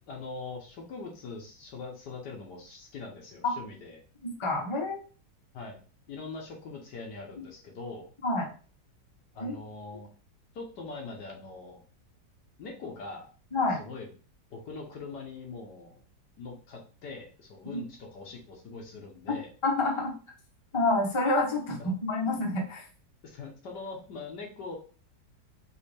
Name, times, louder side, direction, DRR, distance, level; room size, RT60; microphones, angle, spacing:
voice 1, 0.1-4.0 5.5-5.8 6.1-8.1 9.3-10.1 10.5-11.8 12.6-13.3 13.8-14.1 14.5-16.0 16.4-19.5 21.8-21.9 23.2-24.8, left 3 dB, 70° left, 1 dB, 1.4 m, -42 dB
voice 2, 4.4-5.0 8.2-8.5 9.4-9.5 13.5-13.8 17.7-17.8 19.6-20.1 20.7-22.9, left 2 dB, 30° left, 0 dB, 0.6 m, -28 dB
5.4 x 2.5 x 3.3 m, 0.39 s
omnidirectional pair, 2.0 m